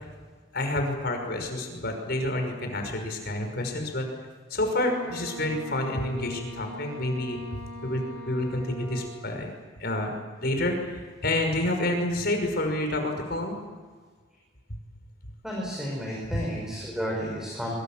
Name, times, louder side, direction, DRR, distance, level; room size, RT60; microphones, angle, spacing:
voice 1, 0.5-4.1 4.5-7.4 7.8-9.5 9.8-10.7 11.2-13.6 16.3-16.4, left 1 dB, 55° left, 4 dB, 5.8 m, -28 dB
Wind instrument woodwind instrument, 4.8-9.3, right 1 dB, 75° right, 5.2 m, -42 dB
voice 2, 15.4-17.7, equal, 5° right, -3 dB, 5.9 m, -32 dB
25.5 x 24.0 x 7.6 m, 1.5 s
head